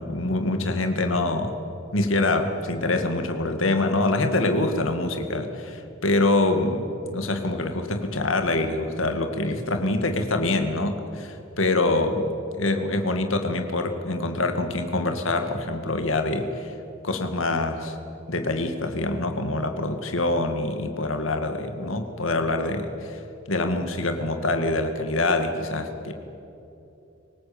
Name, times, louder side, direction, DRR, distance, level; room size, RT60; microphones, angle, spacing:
voice 1, 0.0-1.6 1.9-16.7 17.0-18.0 18.3-23.2 23.5-26.1, left 2 dB, 70° left, 6 dB, 2.2 m, -25 dB
24.0 x 19.5 x 8.8 m, 2.9 s
head